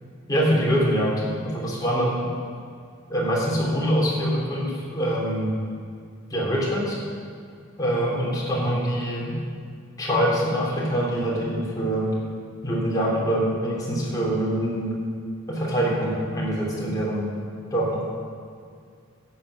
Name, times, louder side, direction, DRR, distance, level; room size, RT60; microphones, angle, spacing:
voice 1, 0.3-1.1 1.4-2.3 3.1-5.5 6.3-7.0 7.8-9.4 10.0-12.2 12.6-15.0 15.5-17.3 17.7-18.0, equal, 20° left, -5 dB, 3.2 m, -24 dB
11.5 x 8.0 x 6.6 m, 2.2 s
head